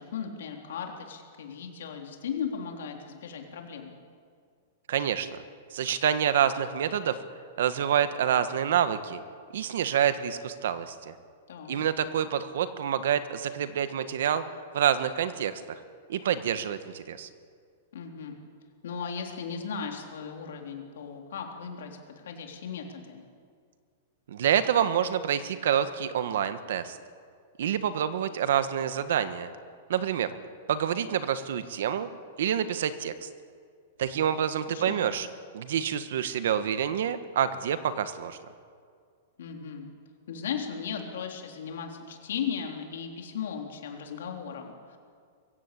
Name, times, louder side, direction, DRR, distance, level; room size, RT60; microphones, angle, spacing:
voice 1, 0.0-3.9 11.5-11.8 17.9-18.4 18.8-23.2 34.2-35.1 39.4-39.9 40.3-45.0, left 7 dB, 75° left, 2 dB, 3.6 m, -37 dB
voice 2, 4.9-5.4 5.7-7.2 7.6-9.2 9.5-11.1 11.7-14.4 14.7-15.8 16.1-17.3 24.3-27.0 27.6-29.5 29.9-30.3 30.7-32.1 32.4-33.3 34.0-35.3 35.5-38.4, right 9 dB, 65° right, 12 dB, 1.4 m, -27 dB
23.0 x 16.0 x 8.4 m, 2.1 s
supercardioid pair, 175°, 0 cm